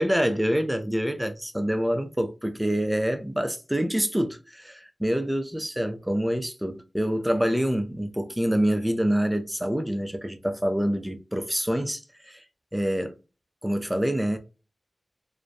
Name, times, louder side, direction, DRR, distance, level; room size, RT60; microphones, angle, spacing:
voice 1, 0.0-12.4 12.7-13.2 13.6-14.4, equal, 5° right, 0.3 m, -26 dB
2.5 x 2.1 x 2.5 m
wide cardioid pair, 70°, 0 cm